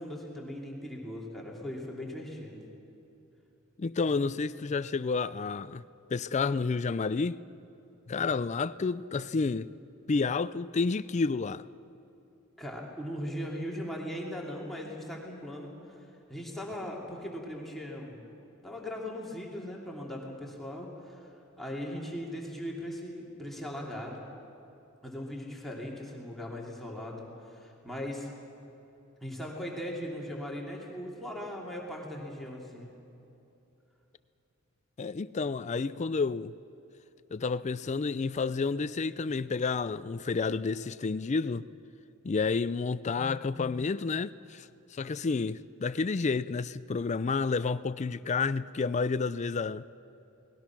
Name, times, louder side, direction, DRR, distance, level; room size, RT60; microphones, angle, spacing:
voice 1, 0.0-2.6 12.6-18.2 18.6-21.3 21.6-24.2 25.0-28.3 29.2-32.9, equal, ahead, 3.0 m, -39 dB
voice 2, 3.8-5.8 6.1-7.4 8.1-9.7 10.1-11.6 35.0-36.5 37.3-41.7 42.2-49.8, left 4 dB, 35° left, 0.4 m, -30 dB
28.5 x 20.0 x 6.1 m
head